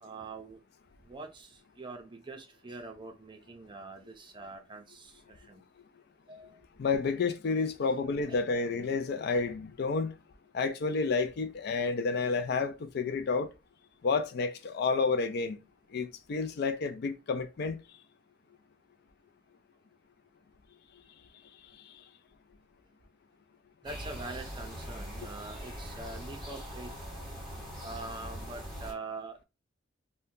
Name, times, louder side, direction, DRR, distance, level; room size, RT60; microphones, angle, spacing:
voice 1, 0.0-0.6 1.1-5.6 6.3-6.6 8.3-8.4 23.8-26.9 27.8-29.4, right 3 dB, 25° right, 0.5 m, -44 dB
voice 2, 6.8-10.2 10.5-13.5 14.0-15.6 15.9-17.8, left 4 dB, 55° left, 0.4 m, -30 dB
sound 1, 23.8-28.9, equal, ahead, 1.5 m, -42 dB
2.7 x 2.2 x 3.6 m
head